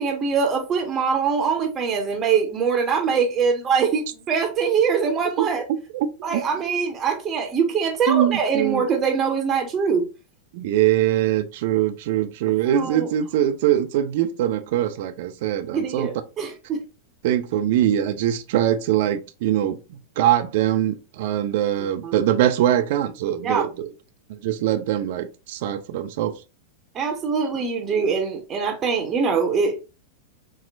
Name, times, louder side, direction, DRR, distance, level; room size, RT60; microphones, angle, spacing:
voice 1, 0.0-5.6 6.2-10.1 12.7-13.1 15.7-16.8 21.8-22.1 23.4-23.7 26.9-29.8, right 6 dB, 25° right, 0.7 m, -23 dB
voice 2, 5.9-6.4 8.1-8.8 10.5-16.1 17.2-19.8 20.2-23.9 24.3-26.3, right 11 dB, 50° right, 0.3 m, -22 dB
4.2 x 2.0 x 2.5 m
figure-of-eight pair, 90°, 0 cm